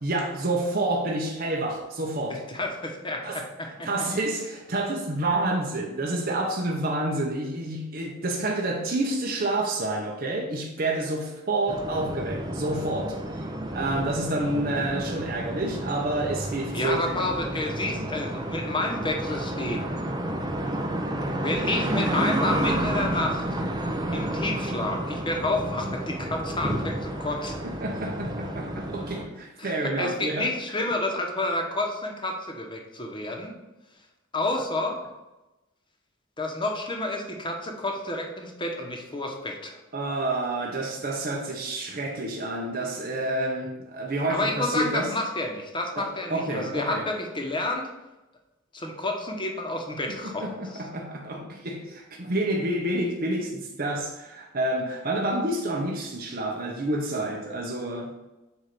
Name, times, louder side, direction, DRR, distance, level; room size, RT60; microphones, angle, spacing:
voice 1, 0.0-2.4 3.2-3.4 3.8-13.5 13.7-17.2 27.6-30.5 34.6-34.7 39.9-45.1 46.0-47.1 50.1-58.2, right 2 dB, 50° right, 0.8 m, -29 dB
voice 2, 2.3-3.9 16.7-19.9 21.4-23.4 24.1-27.6 29.6-33.5 34.3-35.0 36.4-39.8 44.3-47.9 48.7-50.5, left 2 dB, 25° left, 1.1 m, -30 dB
sound 1, 11.7-29.2, right 1 dB, 20° right, 0.6 m, -30 dB
8.0 x 2.7 x 6.0 m
head